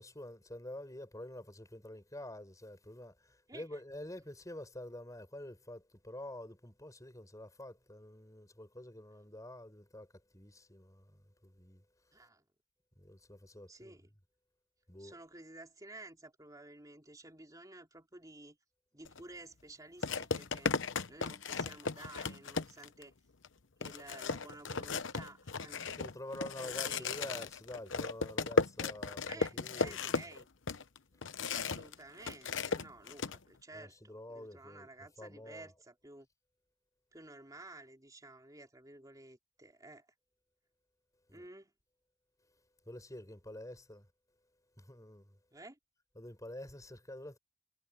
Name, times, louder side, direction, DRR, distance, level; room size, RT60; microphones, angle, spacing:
voice 1, 0.0-10.1 10.3-11.8 13.0-13.9 14.9-15.2 25.9-30.3 33.7-34.9 35.2-35.7 41.3-41.4 42.8-44.1 44.8-45.4 46.1-47.4, left 1 dB, 15° left, 5.1 m, -48 dB
voice 2, 3.5-3.8 12.1-12.5 13.7-14.1 15.0-18.6 18.9-20.7 21.1-23.1 23.8-25.9 26.6-27.2 29.3-30.5 31.5-36.3 37.1-40.1 41.3-41.7 45.5-45.8, right 2 dB, 20° right, 3.5 m, -53 dB
sound 1, 19.0-19.2 20.0-23.0 23.4-23.5 23.8-31.9 32.2-33.4, left 4 dB, 70° left, 1.0 m, -35 dB
head